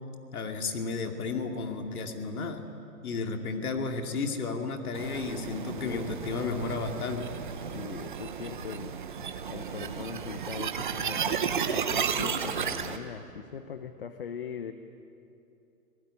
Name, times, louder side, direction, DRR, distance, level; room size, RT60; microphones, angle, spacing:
voice 1, 0.3-2.7 3.0-7.3, left 4 dB, 65° left, 4 dB, 2.8 m, -33 dB
sound 1, 4.9-13.0, right 7 dB, 30° right, 0.9 m, -33 dB
voice 2, 5.5-6.6 7.7-8.9 9.5-14.7, left 6 dB, 35° left, 9 dB, 0.9 m, -40 dB
27.0 x 18.5 x 9.8 m, 2.7 s
hypercardioid pair, 180°, 46 cm